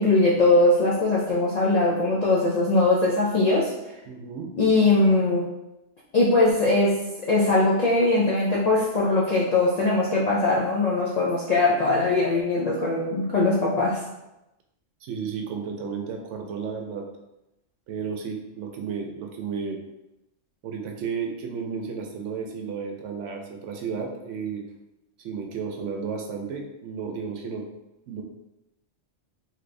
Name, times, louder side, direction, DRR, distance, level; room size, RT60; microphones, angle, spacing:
voice 1, 0.0-3.7 4.5-5.5 6.1-14.0, left 2 dB, 65° left, -5 dB, 0.4 m, -21 dB
voice 2, 4.1-4.5 15.0-17.1 17.9-19.8 20.6-24.6 25.2-27.7 28.1-28.2, right 6 dB, 80° right, 2 dB, 0.9 m, -33 dB
2.8 x 2.5 x 3.2 m, 0.93 s
omnidirectional pair, 1.3 m